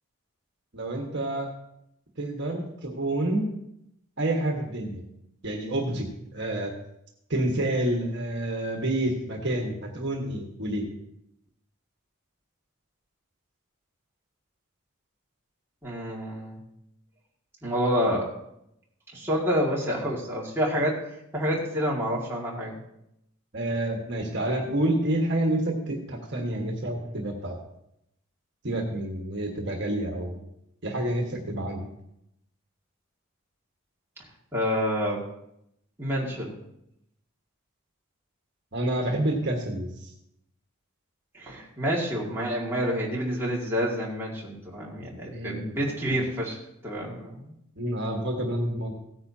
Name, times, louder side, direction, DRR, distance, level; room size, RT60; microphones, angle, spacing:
voice 1, 0.7-1.5 2.2-3.5 4.2-5.0 5.4-6.7 7.3-10.9 23.5-27.5 28.6-30.4 30.8-31.9 38.7-40.1 45.3-45.8 46.1-46.2 47.8-48.9, right 1 dB, 55° right, 1 dB, 1.5 m, -28 dB
voice 2, 15.8-16.6 17.6-18.3 19.1-21.0 21.3-22.8 34.5-35.2 36.0-36.6 41.3-46.6 46.8-47.6, equal, 10° right, -5 dB, 2.2 m, -28 dB
16.0 x 9.5 x 2.8 m, 0.80 s
head